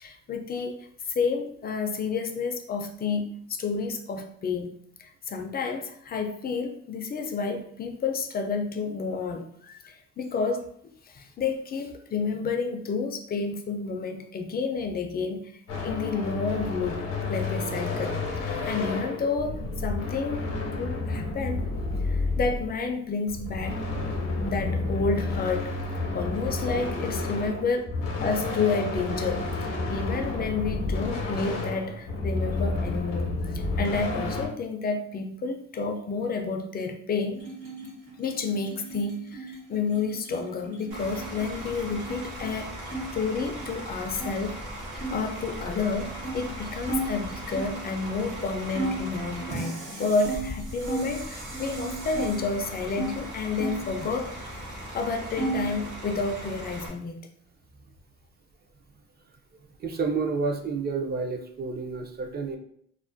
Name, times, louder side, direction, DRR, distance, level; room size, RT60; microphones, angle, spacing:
voice 1, 0.0-10.7 11.0-15.5 15.8-17.0 17.3-21.6 22.0-24.2 24.4-25.8 26.1-27.8 28.2-29.5 29.9-37.4 38.2-42.7 43.1-44.6 45.1-54.7 54.9-57.3, left 4 dB, 30° left, 5 dB, 0.4 m, -30 dB
sound 1, 15.7-22.9 23.3-34.5, left 3 dB, 85° left, 0.6 m, -30 dB
sound 2, 37.3-43.0 43.3-44.4 44.9-47.8 48.3-48.4 48.7-51.1 51.5-53.1 53.5-54.6 54.9-55.8, right 2 dB, 55° right, 1.2 m, -36 dB
Bus / Idling, 40.9-56.9, right 1 dB, 85° right, 0.8 m, -38 dB
voice 2, 59.5-62.6, right 4 dB, 35° right, 3 dB, 0.4 m, -30 dB
2.4 x 2.1 x 2.5 m, 0.66 s
cardioid pair, 90°, 30 cm